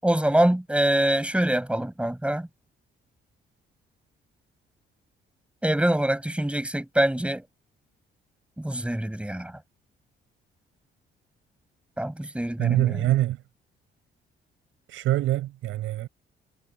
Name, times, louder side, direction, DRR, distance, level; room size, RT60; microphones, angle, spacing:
voice 1, 0.0-2.5 5.6-7.4 8.6-9.6 12.0-13.1, right 1 dB, 5° right, 7.2 m, -24 dB
voice 2, 12.6-13.4 14.9-16.1, right 14 dB, 90° right, 7.9 m, -24 dB
cardioid pair, 90°, 20 cm